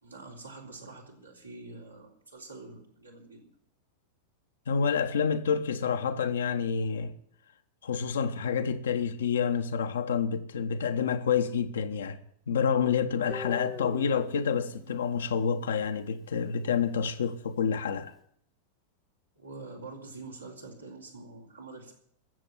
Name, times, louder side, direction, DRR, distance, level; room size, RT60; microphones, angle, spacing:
voice 1, 0.0-3.5 19.4-21.9, right 3 dB, 85° right, 3.7 m, -46 dB
voice 2, 4.7-7.1 7.8-12.2 12.5-18.1, left 6 dB, 65° left, 1.2 m, -28 dB
Guitar, 13.3-16.2, left 6 dB, 20° left, 1.0 m, -43 dB
14.0 x 7.7 x 9.8 m
figure-of-eight pair, 90°, 0 cm